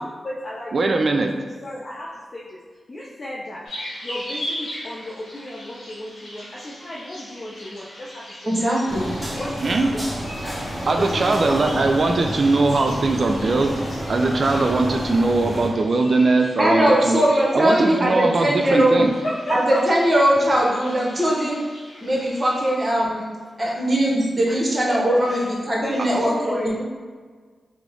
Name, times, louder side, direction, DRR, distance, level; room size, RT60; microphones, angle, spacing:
voice 1, 0.0-0.8 1.6-2.6 2.9-3.7 4.0-8.4 9.4-10.0 10.4-10.6 10.9-11.8 17.0-17.4 19.2-19.8 23.6-23.8 24.5-24.6 24.9-25.5 25.8-26.8, left 1 dB, 55° left, -4 dB, 0.5 m, -33 dB
voice 2, 0.7-1.3 9.6-9.9 10.9-13.7 14.1-17.2 17.5-19.1, right 3 dB, 60° right, 4 dB, 0.3 m, -20 dB
sound 1, 3.7-22.7, left 1 dB, 80° left, 0.9 m, -39 dB
voice 3, 8.5-9.2 16.6-19.0 19.5-21.7 22.0-23.3 23.6-26.8, right 1 dB, 45° right, -3 dB, 0.9 m, -20 dB
sound 2, 8.9-15.7, equal, 20° right, 1.3 m, -30 dB
3.0 x 2.0 x 3.8 m, 1.5 s
supercardioid pair, 40°, 0 cm